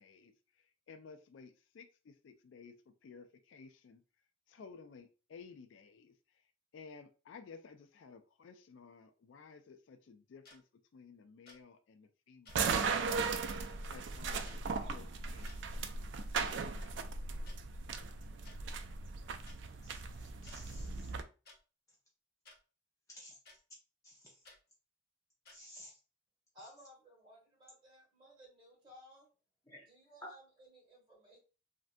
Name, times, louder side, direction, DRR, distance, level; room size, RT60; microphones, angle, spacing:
voice 1, 0.0-4.0 4.5-6.4 6.7-10.6 10.9-13.3 13.9-17.1, left 5 dB, 70° left, 9 dB, 0.3 m, -56 dB
sound 1, 10.4-10.6 11.5-11.6 12.4-12.6 13.5-13.6 14.4-14.6 15.3-15.6 16.4-16.6 17.5-17.6 18.4-18.6 19.5-19.6 20.4-20.6 21.4-21.6 22.4-22.6 23.4-23.6 24.4-24.6 25.4-25.6, left 2 dB, 50° left, 1.0 m, -57 dB
sound 2, 12.5-21.2, right 4 dB, 60° right, 0.3 m, -37 dB
voice 2, 20.4-21.1 23.1-23.4 24.0-24.2 25.5-25.9 29.7-29.8, left 1 dB, 15° left, -3 dB, 0.6 m, -54 dB
voice 3, 26.5-29.3 29.8-31.4, equal, 25° right, -3 dB, 1.7 m, -58 dB
3.2 x 2.6 x 2.5 m, 0.34 s
head